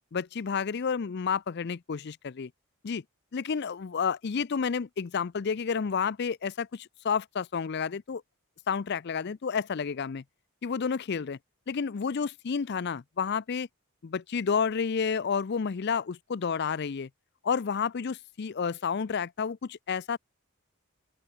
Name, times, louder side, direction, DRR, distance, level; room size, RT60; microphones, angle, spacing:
voice 1, 0.1-2.5 2.8-3.0 3.3-8.2 8.7-10.2 10.6-11.4 11.7-13.7 14.0-17.1 17.4-20.2, left 6 dB, 50° left, 0.4 m, -30 dB
open air
head